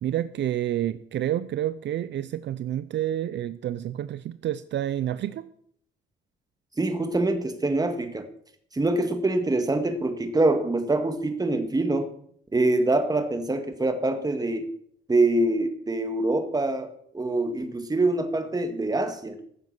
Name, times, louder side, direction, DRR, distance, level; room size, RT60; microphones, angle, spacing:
voice 1, 0.0-5.5, right 12 dB, 65° right, 0.6 m, -29 dB
voice 2, 6.8-8.3 8.7-12.1 12.5-14.7 15.1-19.4, right 2 dB, 20° right, 2.0 m, -25 dB
15.0 x 7.5 x 6.1 m
cardioid pair, 90°, 20 cm